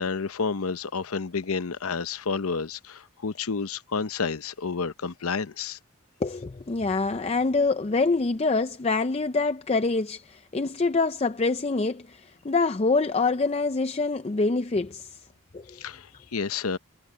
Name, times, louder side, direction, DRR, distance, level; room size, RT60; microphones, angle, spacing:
voice 1, 0.0-5.8 15.8-16.8, left 5 dB, 75° left, 0.8 m, -30 dB
voice 2, 6.2-15.2 15.5-15.8, left 3 dB, 25° left, 0.4 m, -25 dB
head